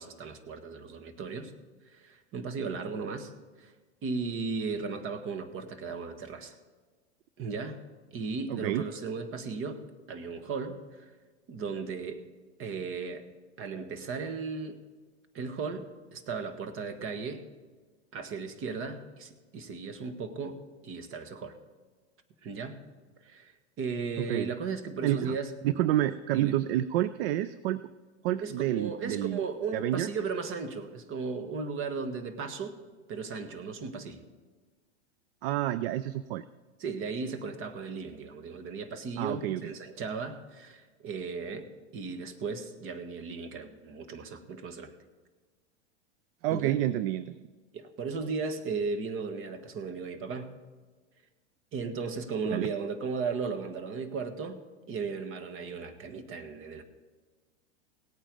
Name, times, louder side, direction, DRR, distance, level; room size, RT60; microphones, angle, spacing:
voice 1, 0.0-1.5 1.9-3.3 3.6-3.7 4.0-6.6 7.4-7.8 8.1-11.1 11.5-12.2 12.6-13.3 13.6-14.8 15.3-17.5 18.1-21.6 22.4-22.8 23.2-23.5 23.8-25.5 26.3-26.6 28.4-32.8 33.1-34.2 36.8-44.9 46.5-46.8 47.7-50.6 51.7-54.6 54.9-56.8, right 4 dB, 35° right, 9 dB, 1.5 m, -36 dB
voice 2, 8.5-8.8 24.2-24.5 25.0-25.4 25.6-27.8 28.2-29.4 29.7-30.1 35.4-36.4 39.2-39.7 46.4-47.4 52.5-52.7, right 13 dB, 55° right, 15 dB, 0.5 m, -29 dB
17.5 x 8.9 x 5.2 m, 1.4 s
hypercardioid pair, 105°, 35 cm